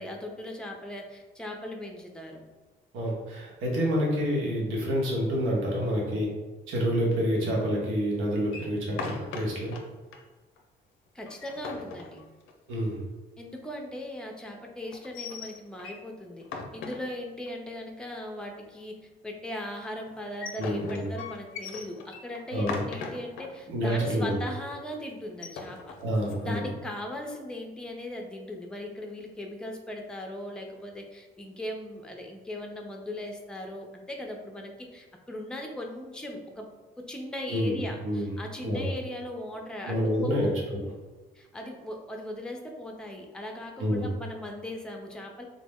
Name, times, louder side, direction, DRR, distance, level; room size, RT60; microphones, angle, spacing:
voice 1, 0.0-2.4 11.1-12.2 13.4-19.0 19.2-25.8 26.4-36.7 37.1-40.5 41.3-45.4, left 1 dB, 5° left, 2 dB, 0.5 m, -38 dB
voice 2, 2.9-6.3 6.7-9.8 12.7-13.0 20.6-21.0 22.5-22.8 23.7-24.3 26.0-26.6 37.5-37.8 38.0-38.3 38.6-38.9 39.9-40.8 43.8-44.1, equal, 90° right, -2 dB, 0.9 m, -28 dB
sound 1, 8.4-9.8 10.1-10.2 10.6-10.7 11.2-12.7 14.9-16.1 16.4-17.5 20.1-23.5 23.9-24.0 24.3-24.6 25.2-26.4, left 4 dB, 85° left, 0.5 m, -39 dB
3.7 x 2.0 x 3.5 m, 1.2 s
cardioid pair, 90°, 20 cm